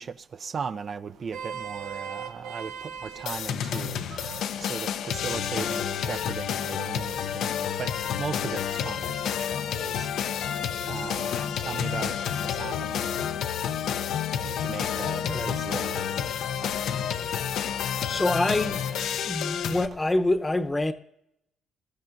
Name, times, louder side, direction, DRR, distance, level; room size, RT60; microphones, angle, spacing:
voice 1, 0.0-4.0 4.6-10.4 10.8-13.4 14.4-17.0 19.9-20.0, right 6 dB, 50° right, 0.5 m, -38 dB
Vehicle horn car horn honking, 1.1-7.5, right 7 dB, 85° right, 0.9 m, -42 dB
sound 1, 3.3-19.9, left 8 dB, 80° left, 0.6 m, -30 dB
voice 2, 15.2-15.6 18.1-18.8 19.2-20.9, left 2 dB, 15° left, 0.8 m, -26 dB
21.5 x 14.0 x 2.6 m
cardioid pair, 90°, 0 cm